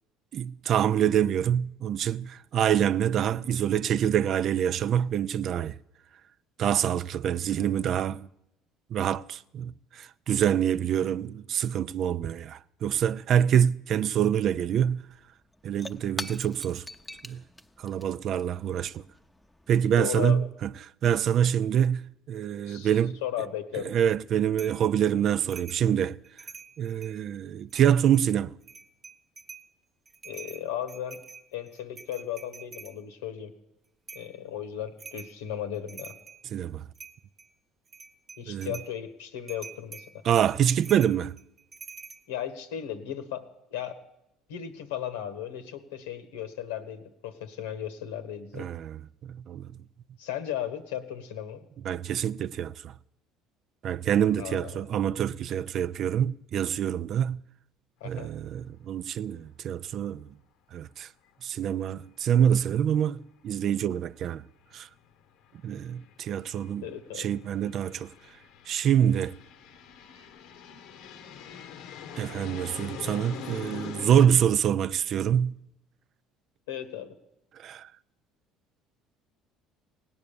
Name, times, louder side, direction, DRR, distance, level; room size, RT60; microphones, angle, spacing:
voice 1, 0.3-5.8 6.6-8.3 8.9-15.1 15.6-16.8 17.2-17.4 17.8-19.0 19.7-20.7 21.0-23.2 23.8-26.2 26.8-28.5 36.5-36.8 38.5-38.7 40.2-41.3 48.6-49.7 51.8-52.9 53.8-57.4 58.0-60.3 60.7-61.1 61.4-64.4 64.7-64.9 65.6-66.9 67.2-68.1 68.7-69.4 72.1-75.6 77.6-77.9, right 9 dB, 55° right, 0.4 m, -26 dB
Shatter / Crushing, 14.8-14.9 15.1-20.0, left 1 dB, 5° left, 0.8 m, -44 dB
voice 2, 20.0-20.4 22.7-22.9 23.2-23.9 30.2-31.2 31.5-33.5 34.1-36.1 38.4-40.0 42.3-44.0 44.5-48.6 50.2-51.6 54.4-54.9 58.0-58.3 66.8-67.3 76.7-77.1, left 10 dB, 90° left, 1.4 m, -36 dB
sound 1, 24.6-24.8 25.5-25.9 26.2-27.2 27.7-28.2 28.6-29.7 30.1-33.0 34.1-34.3 35.0-35.4 35.7-36.4 36.9-37.5 37.9-38.9 39.5-42.2, right 5 dB, 40° right, 1.0 m, -46 dB
sound 2, 58.1-58.3 58.6-58.7 62.7-62.8 63.9-64.0 64.7-74.3, left 8 dB, 75° left, 1.0 m, -44 dB
17.5 x 9.5 x 6.9 m
supercardioid pair, 80°, 0 cm